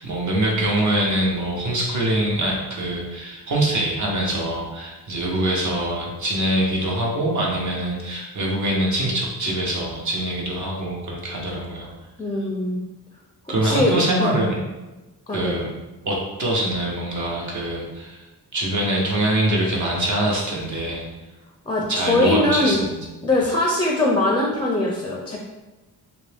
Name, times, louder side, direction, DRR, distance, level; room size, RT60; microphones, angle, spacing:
voice 1, 0.0-11.9 13.5-14.6 15.3-15.7 16.0-18.2 18.5-21.1 21.9-23.0, right 1 dB, 50° right, -3 dB, 1.0 m, -24 dB
voice 2, 12.2-12.8 13.6-13.9 14.2-14.3 15.3-15.6 21.7-22.8 23.2-25.4, left 2 dB, 15° left, -2 dB, 0.4 m, -21 dB
2.9 x 2.6 x 3.4 m, 1.1 s
cardioid pair, 95°, 38 cm